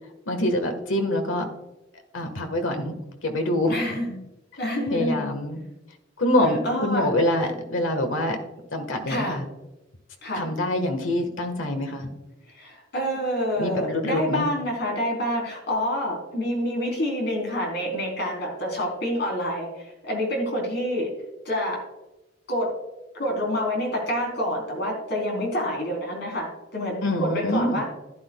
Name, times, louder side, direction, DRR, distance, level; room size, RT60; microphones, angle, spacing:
voice 1, 0.3-1.5 2.1-2.9 3.2-3.7 4.9-5.6 6.2-8.4 8.7-9.5 10.3-12.1 13.6-14.5 27.0-27.8, left 1 dB, 90° left, 5 dB, 1.6 m, -25 dB
voice 2, 3.7-4.2 4.6-5.3 6.6-7.1 9.1-9.4 10.2-10.4 12.5-21.1 21.5-21.8 22.5-22.7 23.2-27.8, equal, 60° left, 0 dB, 3.9 m, -27 dB
14.5 x 10.5 x 2.3 m, 0.99 s
head